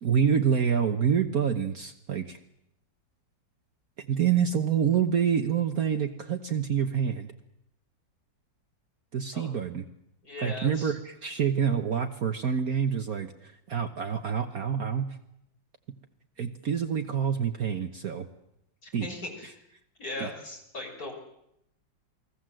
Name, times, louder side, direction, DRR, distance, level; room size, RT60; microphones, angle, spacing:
voice 1, 0.0-2.4 4.0-7.3 9.1-9.8 10.4-15.1 16.4-18.3 18.9-19.1 20.2-20.3, right 7 dB, 55° right, 6 dB, 1.5 m, -27 dB
voice 2, 10.2-10.9 18.8-19.5 20.0-21.1, left 2 dB, 50° left, 1 dB, 6.1 m, -38 dB
29.0 x 20.5 x 7.7 m, 0.81 s
omnidirectional pair, 2.0 m